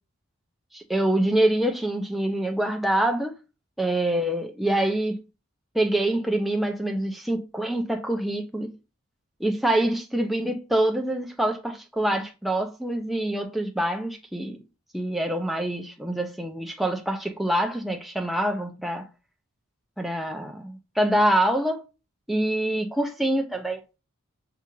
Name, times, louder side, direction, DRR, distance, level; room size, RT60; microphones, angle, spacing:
voice 1, 0.7-3.3 3.8-5.2 5.7-8.7 9.4-14.6 14.9-19.1 20.0-21.8 22.3-23.8, right 1 dB, ahead, 0.4 m, -25 dB
5.6 x 2.4 x 3.0 m
head